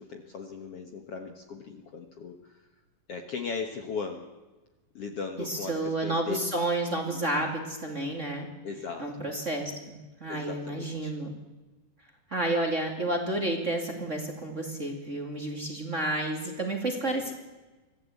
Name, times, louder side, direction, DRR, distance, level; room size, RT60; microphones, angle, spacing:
voice 1, 0.0-2.6 3.1-4.3 5.0-6.4 7.1-7.5 8.6-9.1 10.3-11.2, left 5 dB, 55° left, 4 dB, 1.9 m, -38 dB
voice 2, 5.4-8.5 9.0-11.3 12.3-17.3, right 1 dB, 25° right, 2 dB, 2.2 m, -31 dB
24.0 x 15.0 x 8.4 m, 1.2 s
omnidirectional pair, 4.0 m